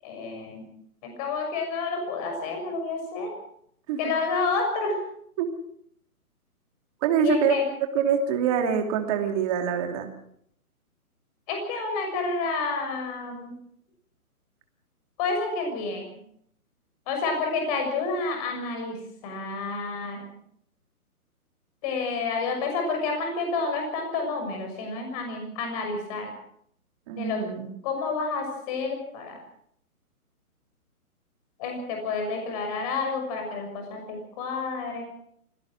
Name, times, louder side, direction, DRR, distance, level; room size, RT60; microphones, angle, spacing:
voice 1, 0.0-0.6 1.0-3.3 4.0-5.0 7.2-7.6 11.5-13.6 15.2-16.1 17.1-20.2 21.8-26.3 27.2-27.4 27.8-29.4 31.6-35.0, left 4 dB, 25° left, 4 dB, 6.5 m, -29 dB
voice 2, 7.0-7.5 7.9-10.1 27.1-27.7, right 7 dB, 25° right, 4 dB, 2.7 m, -25 dB
24.5 x 17.5 x 6.3 m, 0.69 s
hypercardioid pair, 160°, 45 cm